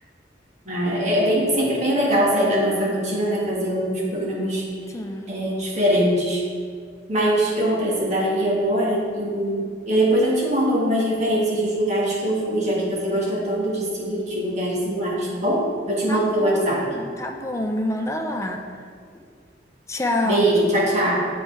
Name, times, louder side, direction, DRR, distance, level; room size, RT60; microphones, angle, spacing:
voice 1, 0.7-4.6 5.3-6.4 7.1-16.9 20.2-21.2, right 1 dB, 40° right, -5 dB, 1.7 m, -22 dB
voice 2, 4.9-5.3 16.1-18.6 19.9-20.5, left 1 dB, 15° left, 2 dB, 0.5 m, -27 dB
7.7 x 4.1 x 4.6 m, 2.1 s
head